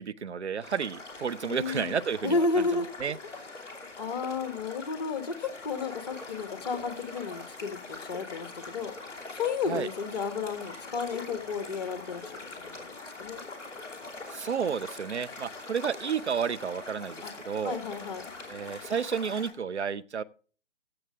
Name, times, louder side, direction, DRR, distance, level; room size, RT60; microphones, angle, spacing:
voice 1, 0.0-2.6 3.0-3.2 9.7-9.9 14.3-17.8 18.5-20.2, right 7 dB, 65° right, 0.8 m, -31 dB
sound 1, 0.6-19.5, left 3 dB, 10° left, 2.9 m, -43 dB
voice 2, 1.4-1.9 2.2-2.9 3.6-8.9 9.3-12.8 13.2-13.4 17.2-17.3 17.6-18.3, left 4 dB, 35° left, 1.6 m, -32 dB
15.5 x 8.1 x 3.6 m
figure-of-eight pair, 150°, 36 cm